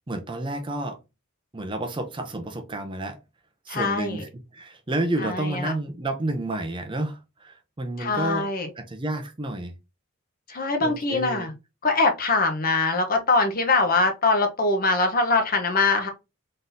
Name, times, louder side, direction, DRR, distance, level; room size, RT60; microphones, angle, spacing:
voice 1, 0.1-1.0 1.5-3.2 3.7-8.5 8.8-9.7 10.5-11.5, right 1 dB, 25° right, 0.5 m, -30 dB
voice 2, 3.7-4.2 5.2-5.7 8.0-8.7 10.5-11.5 11.8-16.1, left 3 dB, 40° left, 0.9 m, -23 dB
3.8 x 3.7 x 2.6 m
head